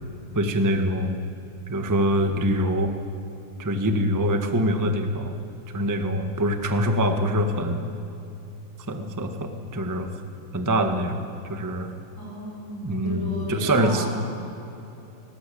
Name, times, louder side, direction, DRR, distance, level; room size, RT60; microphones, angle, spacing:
voice 1, 0.3-1.2 1.7-2.9 3.6-5.3 5.7-7.9 8.9-10.1 10.5-11.9 12.8-14.0, equal, 30° right, 5 dB, 0.3 m, -24 dB
voice 2, 12.2-14.1, right 1 dB, 20° left, -3 dB, 5.6 m, -33 dB
19.0 x 19.0 x 8.6 m, 3.0 s
omnidirectional pair, 3.4 m